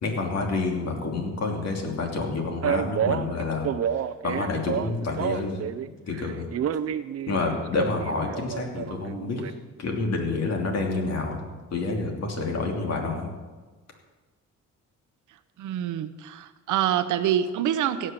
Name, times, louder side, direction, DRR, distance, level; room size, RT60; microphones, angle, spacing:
voice 1, 0.0-5.6 6.1-6.5 7.3-9.5 9.8-11.4 11.7-13.3, left 3 dB, 60° left, 1 dB, 3.0 m, -28 dB
Male speech man speaking, 2.6-5.9 6.1-9.5, right 8 dB, 55° right, 0.7 m, -29 dB
voice 2, 15.6-18.1, right 10 dB, 80° right, 12 dB, 0.9 m, -26 dB
16.5 x 6.5 x 7.5 m, 1.3 s
cardioid pair, 90°, 30 cm